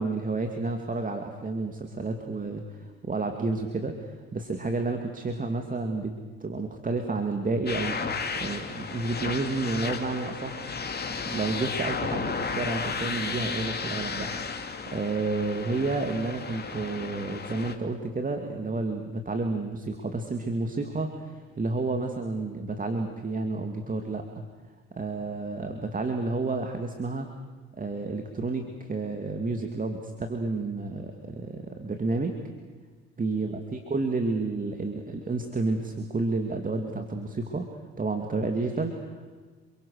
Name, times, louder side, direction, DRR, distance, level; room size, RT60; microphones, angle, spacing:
voice 1, 0.0-6.1 6.4-10.6 11.2-24.3 24.9-27.3 27.8-32.4 33.2-37.7 38.0-39.3, right 3 dB, 25° right, 5 dB, 2.5 m, -30 dB
sound 1, 7.7-17.7, left 5 dB, 30° left, 2.9 m, -33 dB
28.0 x 23.0 x 6.7 m, 1.3 s
hypercardioid pair, 65°, 31 cm